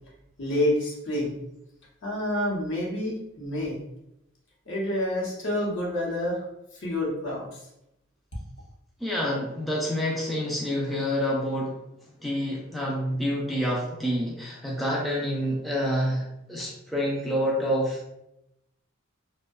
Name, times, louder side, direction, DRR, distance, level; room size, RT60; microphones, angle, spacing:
voice 1, 0.4-1.4 2.0-3.8 4.7-6.4 6.7-7.7, left 1 dB, 60° left, -3 dB, 0.8 m, -28 dB
voice 2, 9.0-11.8 12.1-18.1, equal, ahead, -5 dB, 0.3 m, -28 dB
2.6 x 2.1 x 2.3 m, 0.86 s
head